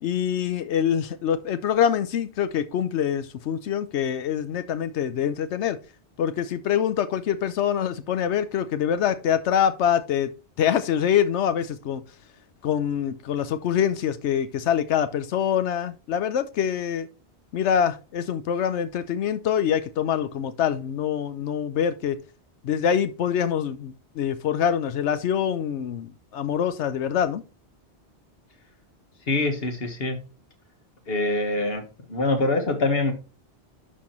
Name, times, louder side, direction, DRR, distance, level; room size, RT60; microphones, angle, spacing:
voice 1, 0.0-5.8 6.2-10.3 10.6-12.0 12.6-17.1 17.5-22.2 22.6-27.4, left 9 dB, 90° left, 1.0 m, -25 dB
voice 2, 29.2-30.2 31.1-33.1, left 2 dB, 60° left, 1.6 m, -24 dB
11.0 x 4.4 x 3.0 m
omnidirectional pair, 1.1 m